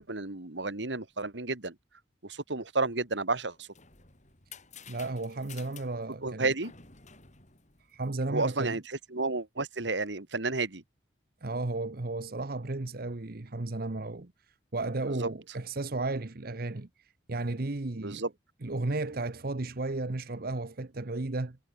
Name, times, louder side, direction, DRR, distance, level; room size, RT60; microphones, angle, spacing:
voice 1, 0.0-1.7 2.2-3.7 6.2-6.7 8.3-10.8 15.1-15.3 18.0-18.3, right 3 dB, 80° right, 2.1 m, -31 dB
sound 1, 3.4-8.4, left 6 dB, 40° left, 7.4 m, -52 dB
voice 2, 4.9-6.5 7.9-8.8 11.4-14.3 14.7-18.2 18.6-21.6, right 2 dB, 55° right, 1.1 m, -34 dB
head